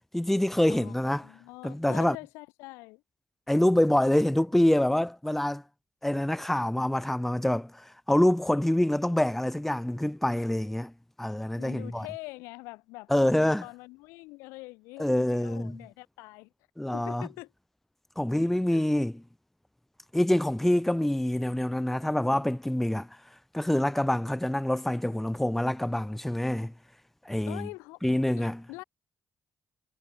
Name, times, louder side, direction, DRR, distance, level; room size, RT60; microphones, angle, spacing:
voice 1, 0.1-1.3 1.6-2.2 3.5-5.6 6.0-10.9 11.2-12.1 13.1-13.6 15.0-15.8 16.8-17.3 18.2-19.1 20.1-23.1 23.5-26.7 27.3-27.7 28.0-28.6, left 1 dB, 5° left, 0.6 m, -26 dB
voice 2, 1.2-3.0 11.6-16.5 16.9-17.5 18.7-18.8 27.5-28.0 28.3-28.8, left 24 dB, 85° left, 2.5 m, -44 dB
supercardioid pair, 55°, 4 cm